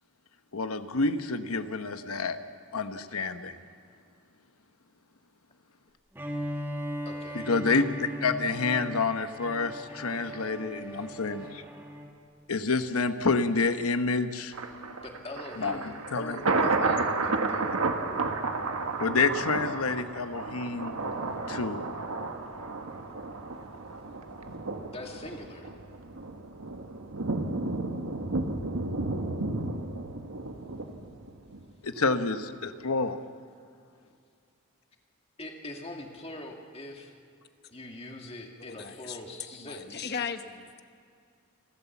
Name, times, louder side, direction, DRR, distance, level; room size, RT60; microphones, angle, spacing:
voice 1, 0.5-2.4 2.7-3.6 7.3-11.6 12.5-14.5 15.6-16.4 19.0-21.0 21.5-21.9 31.8-33.2, left 4 dB, 85° left, 9 dB, 1.1 m, -28 dB
Bowed string instrument, 6.1-12.2, equal, 10° right, 1.7 m, -38 dB
voice 2, 7.1-7.5 11.1-11.2 15.0-17.8 24.9-25.7 35.4-37.1 37.7-40.1, left 1 dB, 25° left, 2 dB, 2.1 m, -43 dB
Thunder, 14.5-31.6 32.0-32.1, right 3 dB, 85° right, 1.4 m, -32 dB
voice 3, 38.6-39.2 39.5-40.8, left 6 dB, 50° left, 8 dB, 1.1 m, -37 dB
29.0 x 12.5 x 7.2 m, 2.4 s
head